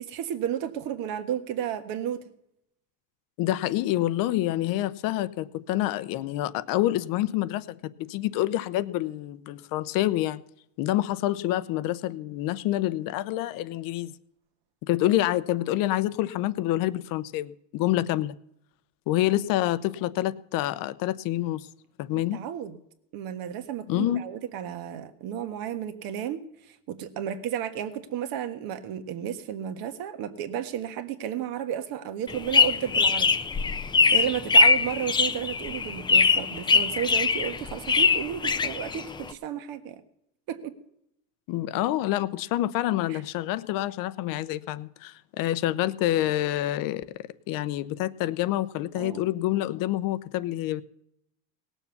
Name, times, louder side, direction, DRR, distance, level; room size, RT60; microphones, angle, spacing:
voice 1, 0.0-2.2 19.3-19.5 22.1-22.8 23.1-33.3 34.1-40.0 40.5-40.7 43.1-43.2 48.9-49.2, right 9 dB, 55° right, 1.5 m, -33 dB
voice 2, 3.4-10.4 10.8-14.1 14.9-18.4 19.1-21.7 22.0-22.4 23.9-24.2 41.5-50.8, left 14 dB, 55° left, 0.7 m, -27 dB
sound 1, 32.3-39.3, left 4 dB, 10° left, 0.4 m, -22 dB
18.0 x 7.2 x 7.0 m
supercardioid pair, 125°, 41 cm